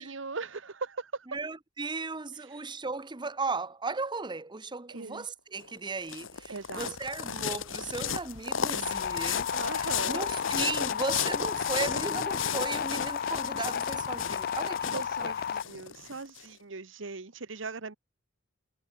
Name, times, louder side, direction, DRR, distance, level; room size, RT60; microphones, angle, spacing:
voice 1, 0.0-1.3 2.5-2.7 4.9-5.3 6.5-6.9 9.5-10.4 14.9-18.0, right 4 dB, 75° right, 1.2 m, -39 dB
voice 2, 1.3-15.3, right 3 dB, 25° right, 0.9 m, -36 dB
sound 1, 5.6-16.4, left 7 dB, 90° left, 1.5 m, -34 dB
sound 2, 8.8-15.6, left 7 dB, 50° left, 0.4 m, -33 dB
head